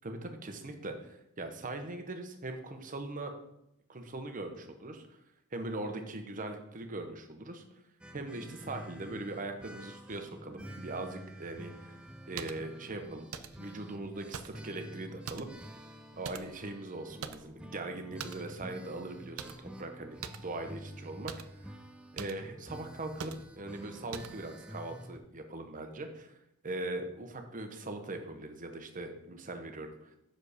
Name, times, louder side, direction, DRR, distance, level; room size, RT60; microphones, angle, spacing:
voice 1, 0.0-3.3 3.9-5.0 5.5-7.6 8.1-12.0 12.3-13.3 13.6-15.5 16.2-21.3 21.6-21.8 22.1-26.3 26.6-30.1, right 2 dB, 40° right, 6 dB, 0.8 m, -40 dB
sound 1, 8.0-25.2, equal, 5° right, 0.4 m, -49 dB
sound 2, 12.4-12.6 13.3-13.7 14.3-14.7 15.3-15.6 16.2-16.7 17.2-17.6 18.2-18.5 19.4-19.7 20.2-20.5 21.3-21.5 22.2-22.4 23.2-23.5 24.1-24.4, right 7 dB, 85° right, 0.5 m, -43 dB
6.4 x 4.9 x 4.9 m, 0.82 s
head